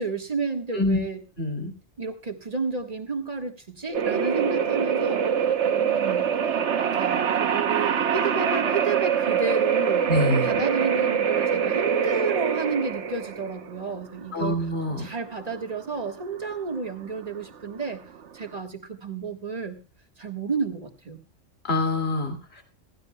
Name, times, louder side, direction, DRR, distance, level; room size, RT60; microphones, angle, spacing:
voice 1, 0.0-1.2 2.0-5.2 5.7-6.3 6.8-10.1 10.4-14.6 14.9-18.0 18.3-19.8 20.2-21.2, right 4 dB, 30° right, 4 dB, 1.5 m, -31 dB
voice 2, 1.4-1.7 10.1-10.6 14.3-15.1 21.6-22.6, left 1 dB, 55° left, 4 dB, 2.6 m, -25 dB
sound 1, 3.9-18.5, right 7 dB, 65° right, 1.2 m, -24 dB
16.0 x 14.5 x 2.2 m, 0.31 s
omnidirectional pair, 1.3 m